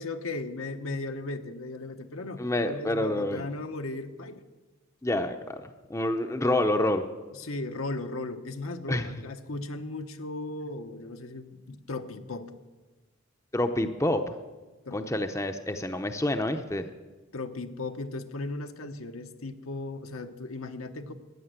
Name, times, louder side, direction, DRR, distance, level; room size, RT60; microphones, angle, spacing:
voice 1, 0.0-4.4 7.3-12.5 14.8-15.0 17.3-21.1, left 2 dB, 80° left, 7 dB, 1.1 m, -36 dB
voice 2, 2.4-3.4 5.0-7.1 8.9-9.1 13.5-14.3 14.9-16.9, left 1 dB, 15° left, 7 dB, 0.6 m, -28 dB
14.5 x 10.0 x 8.1 m, 1.2 s
head